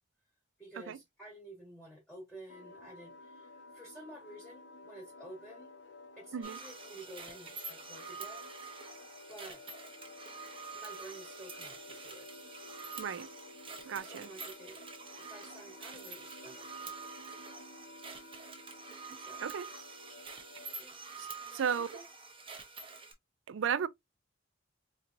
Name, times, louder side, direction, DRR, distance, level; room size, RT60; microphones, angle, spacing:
voice 1, 0.6-5.7 6.2-9.6 10.7-12.3 14.0-14.8 15.3-16.7 19.2-19.4 20.8-21.0 21.4-22.1 22.6-22.8, right 1 dB, ahead, 1.3 m, -52 dB
sound 1, 2.5-20.9, left 3 dB, 70° left, 0.6 m, -53 dB
sound 2, 6.4-23.1, right 4 dB, 30° right, 0.9 m, -47 dB
voice 2, 13.0-13.3 13.9-14.3 19.4-19.7 21.2-21.3 21.5-21.9 23.5-23.9, right 7 dB, 85° right, 0.4 m, -34 dB
4.4 x 2.8 x 2.5 m
head